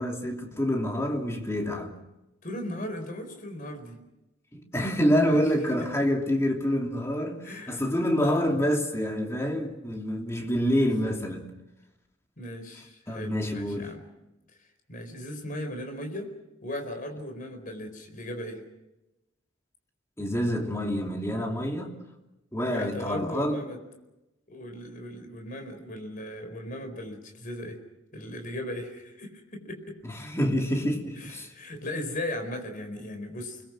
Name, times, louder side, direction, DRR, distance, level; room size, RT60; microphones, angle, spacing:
voice 1, 0.0-1.9 4.5-11.5 13.1-13.9 20.2-21.9 22.5-23.6 30.0-31.5, equal, 15° left, 2.9 m, -27 dB
voice 2, 2.4-4.0 5.2-5.4 5.8-5.9 7.4-7.8 12.4-14.0 14.9-16.3 16.6-18.6 22.7-23.8 24.5-27.8 28.1-30.0 31.2-33.6, left 1 dB, 45° left, 4.5 m, -37 dB
29.5 x 21.0 x 6.2 m
head